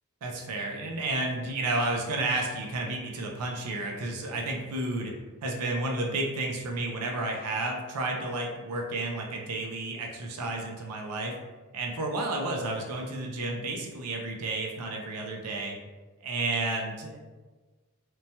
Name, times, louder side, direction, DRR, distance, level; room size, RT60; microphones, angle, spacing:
voice 1, 0.2-5.1 5.4-11.4 11.7-15.8 16.2-17.2, right 2 dB, 85° right, 1 dB, 0.5 m, -31 dB
2.9 x 2.2 x 2.7 m, 1.3 s
head